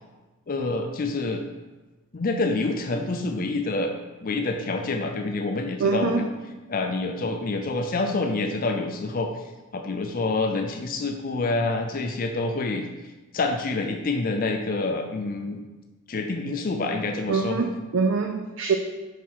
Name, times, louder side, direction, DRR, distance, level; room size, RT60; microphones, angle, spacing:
voice 1, 0.5-1.4 2.1-3.9 4.2-6.3 6.7-9.3 9.7-12.8 13.3-15.6 16.1-17.6, left 3 dB, 40° left, 5 dB, 0.5 m, -27 dB
voice 2, 5.8-6.3 17.3-18.8, right 4 dB, 55° right, 4 dB, 0.4 m, -24 dB
5.5 x 4.7 x 5.6 m, 1.2 s
head